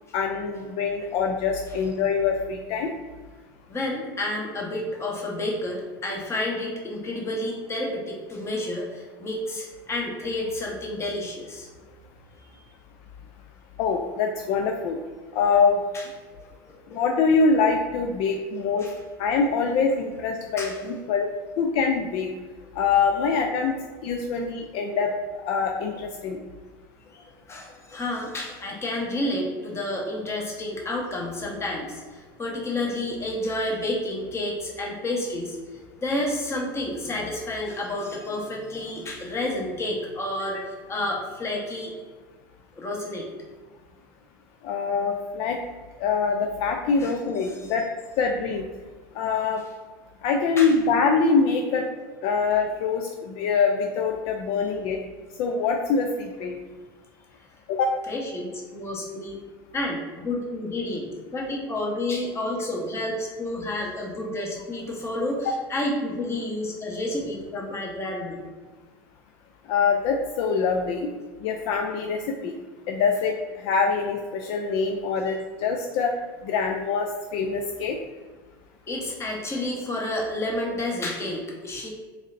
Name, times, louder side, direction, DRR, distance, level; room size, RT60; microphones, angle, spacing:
voice 1, 0.1-2.9 13.8-15.0 15.3-15.8 16.9-18.9 19.2-21.2 21.6-22.3 22.8-23.8 24.0-25.1 25.4-26.4 40.5-40.6 44.6-45.6 46.0-47.9 48.2-48.7 49.2-49.6 50.2-51.8 52.2-55.0 55.4-56.6 57.7-58.0 69.7-71.1 71.4-72.6 72.9-76.1 76.4-78.0, left 5 dB, 60° left, 2 dB, 0.4 m, -24 dB
voice 2, 3.7-11.7 12.5-12.6 15.9-16.0 16.7-17.0 18.8-18.9 20.6-20.8 27.1-41.9 42.7-43.3 47.0-47.7 50.6-50.7 58.1-59.4 59.7-68.4 78.9-81.9, left 1 dB, 25° left, -2 dB, 1.1 m, -30 dB
3.6 x 3.2 x 2.5 m, 1.4 s
hypercardioid pair, 90°, 11 cm